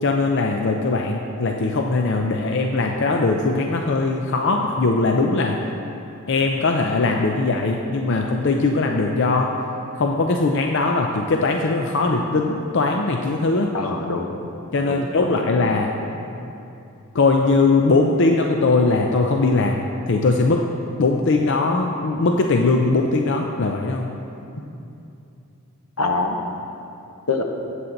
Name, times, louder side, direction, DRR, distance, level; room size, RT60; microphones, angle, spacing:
voice 1, 0.0-5.6 6.3-9.5 9.9-13.7 14.7-15.9 17.1-20.6 21.0-24.1, left 3 dB, 55° left, 2 dB, 0.5 m, -20 dB
voice 2, 13.7-14.4 14.8-15.0 15.3-15.5 16.0-16.1 26.0-26.4 27.3-27.4, left 3 dB, 80° left, 3 dB, 1.1 m, -24 dB
13.5 x 8.0 x 4.0 m, 2.7 s
head